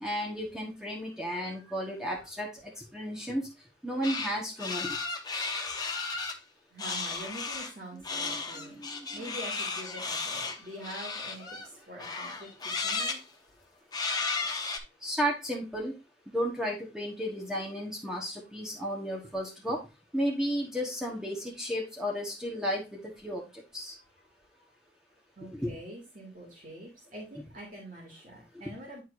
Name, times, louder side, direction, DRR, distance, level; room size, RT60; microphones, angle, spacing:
voice 1, 0.0-2.5 2.9-3.4 3.8-5.0 7.9-9.2 15.0-15.9 16.3-19.8 20.1-23.4 23.7-23.9 25.5-25.7, equal, 5° right, -1 dB, 1.3 m, -33 dB
voice 2, 1.4-2.2 6.7-8.8 9.1-13.2 24.5-24.6 25.4-29.0, right 1 dB, 50° right, -2 dB, 2.7 m, -45 dB
sound 1, 4.0-4.3 4.6-6.4 6.8-7.7 8.0-11.7 12.0-13.2 13.9-14.8, left 4 dB, 25° left, 0.9 m, -34 dB
10.5 x 4.7 x 2.6 m, 0.26 s
head